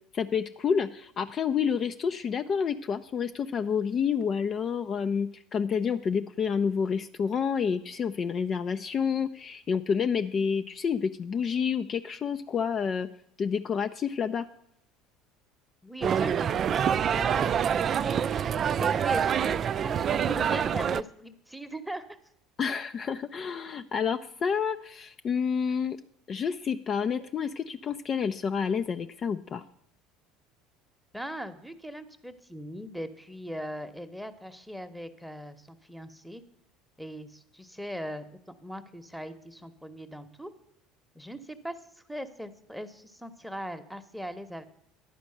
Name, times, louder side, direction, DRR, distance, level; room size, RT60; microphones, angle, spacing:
voice 1, 0.1-13.1 13.4-14.5 22.6-26.0 26.3-29.6, left 6 dB, 40° left, 9 dB, 0.4 m, -29 dB
voice 2, 15.8-18.2 18.8-22.2 31.1-36.4 37.0-40.5 41.1-44.6, equal, ahead, 11 dB, 1.0 m, -40 dB
sound 1, 16.0-21.0, right 8 dB, 45° right, 0.3 m, -26 dB
10.5 x 5.1 x 7.7 m, 0.73 s
hypercardioid pair, 70°, 0 cm